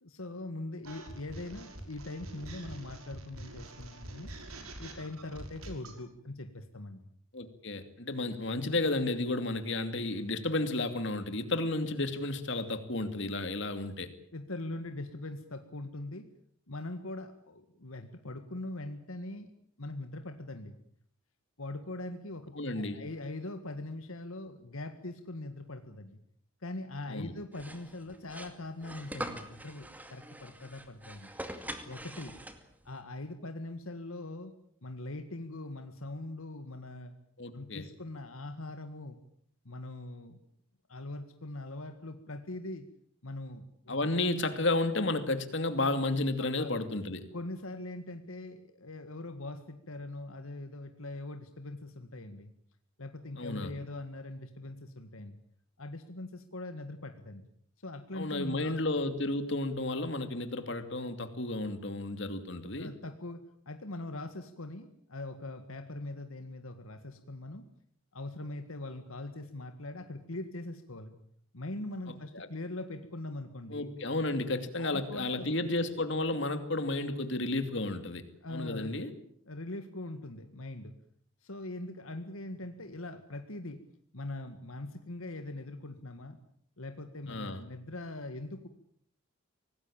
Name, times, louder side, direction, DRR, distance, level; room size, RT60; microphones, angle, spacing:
voice 1, 0.0-4.3 4.8-7.1 14.3-16.3 16.7-19.5 19.8-20.8 21.6-26.2 26.6-31.3 31.9-32.4 32.9-34.5 34.8-37.1 37.5-39.2 39.7-40.4 40.9-42.9 43.2-44.0 46.4-46.7 47.3-52.5 53.0-55.4 55.8-57.5 57.8-58.8 62.7-67.7 68.1-71.2 71.5-73.9 74.8-75.5 78.4-79.0 79.5-80.9 81.4-83.8 84.1-86.4 86.8-88.7, left 2 dB, 80° left, 8 dB, 1.9 m, -42 dB
sound 1, 0.8-6.0, right 1 dB, 90° right, 6.0 m, -46 dB
voice 2, 7.3-14.1 22.5-23.0 27.1-27.3 37.4-37.8 43.9-47.2 53.4-53.7 58.1-62.9 72.3-72.5 73.7-78.2 78.5-79.1 87.3-87.6, left 2 dB, 55° left, 9 dB, 2.7 m, -32 dB
sound 2, 27.5-32.9, right 1 dB, 5° right, 2.3 m, -43 dB
25.0 x 19.0 x 8.8 m, 0.63 s
head